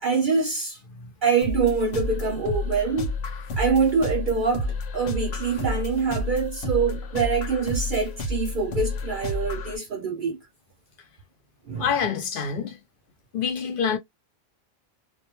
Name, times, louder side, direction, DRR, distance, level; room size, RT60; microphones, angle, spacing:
voice 1, 0.0-0.8 1.2-3.1 3.5-10.4 11.7-11.9, right 5 dB, 60° right, 0.6 m, -25 dB
sound 1, 1.4-9.8, left 2 dB, 80° left, 0.9 m, -30 dB
voice 2, 11.8-12.8 13.3-14.0, left 6 dB, 60° left, 0.7 m, -26 dB
2.2 x 2.2 x 2.9 m
omnidirectional pair, 1.1 m